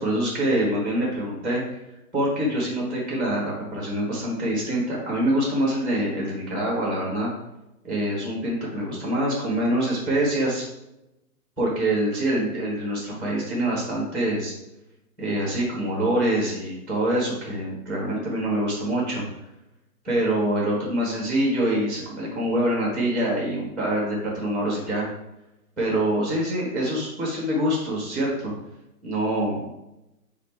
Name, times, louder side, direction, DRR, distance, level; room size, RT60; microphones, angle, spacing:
voice 1, 0.0-1.6 2.1-7.3 7.8-10.6 11.6-14.5 15.2-19.2 20.0-25.1 25.8-28.5 29.0-29.7, right 1 dB, ahead, -4 dB, 0.9 m, -25 dB
5.0 x 2.4 x 4.4 m, 0.91 s
hypercardioid pair, 160°, 45 cm